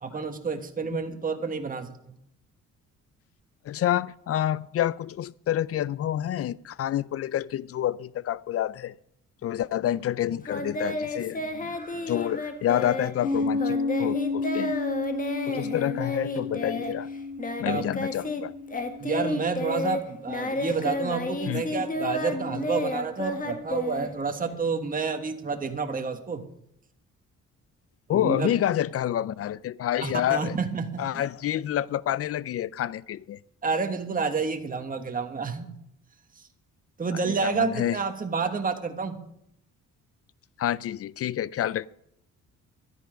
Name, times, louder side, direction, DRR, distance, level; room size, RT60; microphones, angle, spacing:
voice 1, 0.0-2.2 17.6-17.9 19.0-26.4 28.1-28.5 30.0-31.2 33.6-35.7 37.0-39.2, right 5 dB, 30° right, 1.5 m, -29 dB
voice 2, 3.6-8.9 9.4-11.8 12.1-14.8 15.5-17.1 17.6-18.5 21.5-21.6 28.1-30.6 31.0-33.4 37.1-38.0 40.6-41.9, left 11 dB, 50° left, 0.4 m, -28 dB
Singing, 10.5-18.4 18.7-24.5, left 2 dB, 25° left, 1.7 m, -32 dB
Piano, 13.2-20.4, left 3 dB, 85° left, 2.8 m, -32 dB
12.5 x 11.0 x 5.1 m
cardioid pair, 90°, 30 cm